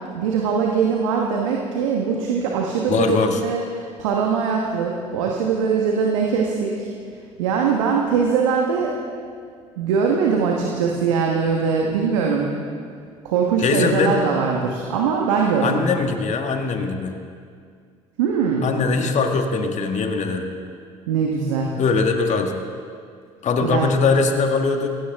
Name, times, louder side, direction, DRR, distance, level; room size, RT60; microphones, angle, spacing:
voice 1, 0.0-6.9 7.4-8.9 9.8-12.5 13.2-15.8 18.2-18.7 21.1-21.7 23.6-23.9, right 5 dB, 80° right, 0 dB, 1.3 m, -21 dB
voice 2, 2.9-3.4 13.6-14.2 15.6-17.2 18.6-20.5 21.8-22.6 23.4-24.9, left 4 dB, 45° left, 4 dB, 1.6 m, -21 dB
17.0 x 16.5 x 3.6 m, 2.2 s
hypercardioid pair, 60°, 16 cm